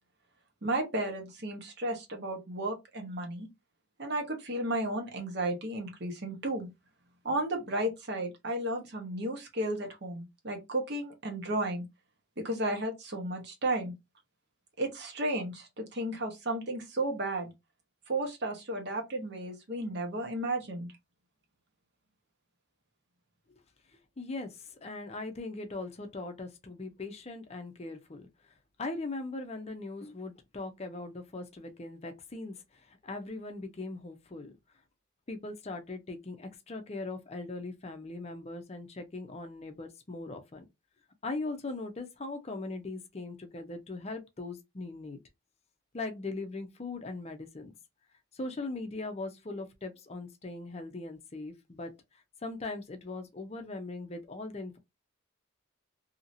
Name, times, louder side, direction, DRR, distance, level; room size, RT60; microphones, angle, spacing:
voice 1, 0.6-3.5 4.0-6.7 7.2-11.8 12.4-13.9 14.8-17.5 18.1-20.9, right 1 dB, 55° right, 1.0 m, -33 dB
voice 2, 24.2-28.3 28.8-32.6 32.9-34.5 35.3-40.7 41.2-45.2 45.9-47.7 48.3-51.9 52.4-54.8, left 2 dB, 30° left, 0.5 m, -40 dB
2.8 x 2.8 x 2.6 m
head